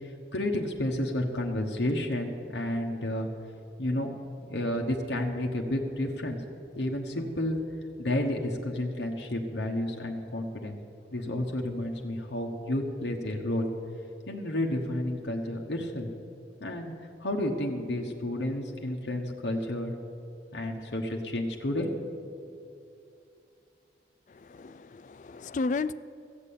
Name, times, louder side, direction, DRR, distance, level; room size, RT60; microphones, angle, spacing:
voice 1, 0.3-3.3 3.8-6.4 6.7-7.6 8.0-10.7 11.1-13.7 14.3-16.1 16.6-16.9 17.2-19.9 20.5-21.9, left 1 dB, 75° left, 1 dB, 1.2 m, -31 dB
voice 2, 24.3-25.9, left 3 dB, 45° left, 15 dB, 0.3 m, -33 dB
15.0 x 7.5 x 8.5 m, 2.6 s
head